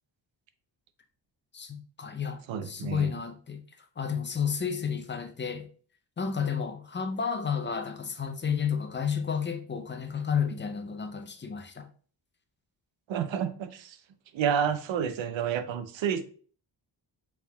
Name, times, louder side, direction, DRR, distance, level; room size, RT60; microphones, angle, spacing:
voice 1, 1.5-3.6 4.0-5.7 6.2-11.9, left 7 dB, 25° left, 0.4 m, -31 dB
voice 2, 2.5-3.1 13.1-14.0 14.3-16.2, right 8 dB, 85° right, 0.6 m, -29 dB
4.8 x 3.4 x 2.2 m
wide cardioid pair, 135°, 45 cm